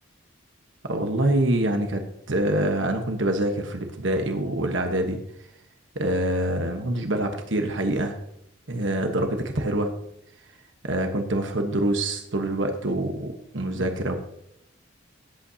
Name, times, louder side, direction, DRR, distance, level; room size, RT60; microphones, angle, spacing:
voice 1, 0.8-2.0 2.3-5.2 5.9-8.2 8.7-9.9 10.8-14.1, right 1 dB, 70° right, 5 dB, 1.2 m, -25 dB
17.5 x 8.5 x 2.8 m, 0.78 s
head